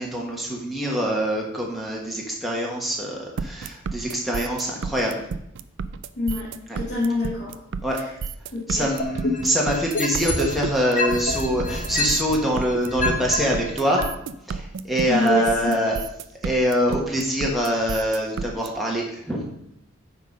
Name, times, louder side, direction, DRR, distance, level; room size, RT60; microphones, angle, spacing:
voice 1, 0.0-5.1 6.7-6.8 7.8-8.0 8.7-14.0 14.5-16.0 16.4-19.4, equal, ahead, -3 dB, 1.3 m, -24 dB
sound 1, 3.4-18.7, right 5 dB, 60° right, 0.4 m, -32 dB
voice 2, 6.2-6.5 6.7-7.5 8.5-8.9 15.0-15.7, left 2 dB, 55° left, -8 dB, 2.0 m, -25 dB
sound 2, 9.0-10.6 11.0-13.4 14.0-14.1, left 2 dB, 40° left, 1.2 m, -26 dB
9.0 x 4.1 x 5.2 m, 0.76 s
head